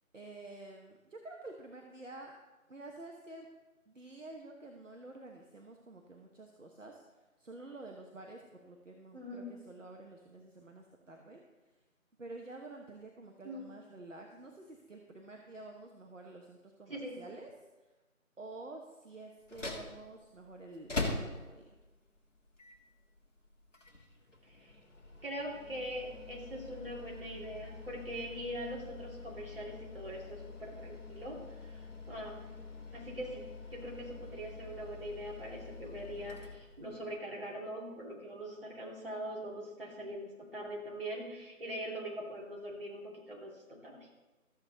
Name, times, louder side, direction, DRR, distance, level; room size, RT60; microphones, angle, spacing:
voice 1, 0.1-2.3 2.7-3.5 3.9-7.0 7.4-11.4 12.2-17.5 17.8-17.9 18.4-21.7 36.8-37.1, right 2 dB, 60° right, 2 dB, 1.2 m, -49 dB
voice 2, 9.1-9.5 13.4-13.7 16.9-17.2 24.4-24.8 25.2-31.8 32.1-32.5 32.9-33.4 33.7-44.1, equal, 40° right, -4 dB, 2.6 m, -42 dB
sound 1, 19.4-37.2, left 3 dB, 60° left, 1.8 m, -45 dB
13.5 x 7.8 x 4.0 m, 1.1 s
figure-of-eight pair, 170°, 42 cm